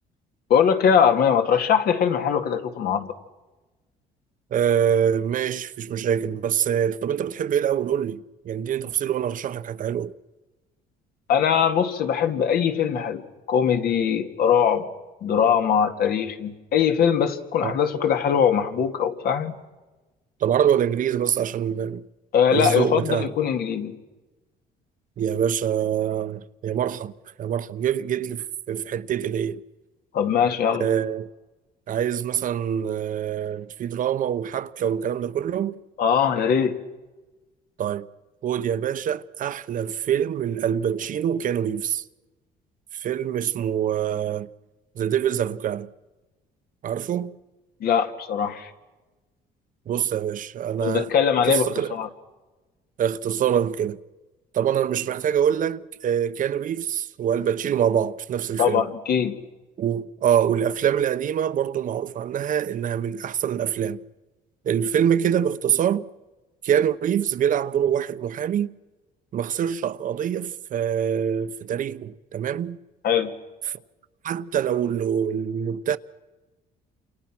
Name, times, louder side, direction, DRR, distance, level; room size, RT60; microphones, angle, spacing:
voice 1, 0.5-3.1 11.3-13.2 13.5-14.9 15.2-19.5 22.3-23.9 30.1-30.9 36.0-36.8 47.8-48.7 50.8-52.1 58.6-59.4 73.0-73.3, left 7 dB, 65° left, 2.2 m, -21 dB
voice 2, 4.5-10.1 17.6-17.8 20.4-22.0 22.5-23.3 25.2-27.1 27.4-29.6 30.8-31.3 31.9-35.8 37.8-38.1 38.4-42.0 42.9-44.5 45.0-45.9 46.8-47.4 49.9-51.1 51.5-52.0 53.0-54.0 54.5-58.9 59.8-64.0 64.6-66.1 66.6-68.7 69.3-72.8 73.7-73.8 74.2-76.0, right 9 dB, 50° right, 0.9 m, -25 dB
29.5 x 27.5 x 6.1 m
cardioid pair, 110°, 17 cm